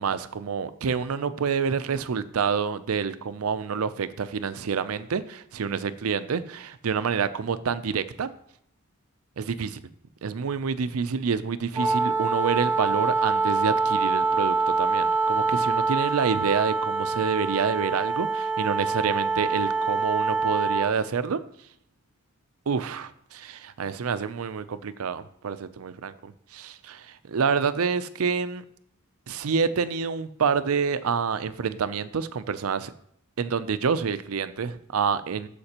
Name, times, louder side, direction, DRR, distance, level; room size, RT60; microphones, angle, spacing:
voice 1, 0.0-8.3 9.4-9.8 10.2-21.4 22.7-28.6 29.3-32.9 33.4-35.5, right 6 dB, 90° right, 13 dB, 0.5 m, -28 dB
Wind instrument woodwind instrument, 11.7-20.9, right 4 dB, 5° right, 2.0 m, -25 dB
13.0 x 5.1 x 2.9 m, 0.68 s
head